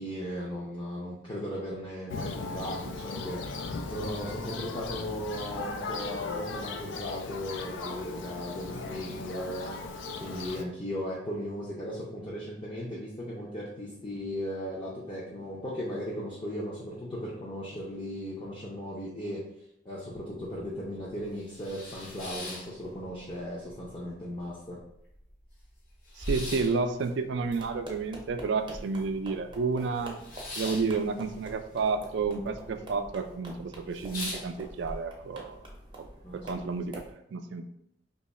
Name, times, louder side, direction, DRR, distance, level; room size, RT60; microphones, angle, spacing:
voice 1, 0.0-3.5 3.9-9.7 10.2-19.4 19.8-24.8 36.2-36.4, equal, 25° left, -6 dB, 0.5 m, -37 dB
Thunder, 2.1-10.6, left 3 dB, 80° left, 0.3 m, -37 dB
sound 1, 20.1-20.2 20.6-20.7 21.2-23.4 23.7-24.4 24.8-24.9 25.1-29.2 29.5-32.3 32.5-33.1 33.5-33.6 33.9-35.0, left 1 dB, 45° left, 0.9 m, -40 dB
voice 2, 26.2-30.2 30.6-35.6 36.0-36.1 36.4-37.8, right 4 dB, 70° right, 8 dB, 0.3 m, -31 dB
sound 2, 27.4-37.1, right 1 dB, 25° right, 0.6 m, -47 dB
3.0 x 2.3 x 4.1 m, 0.76 s
head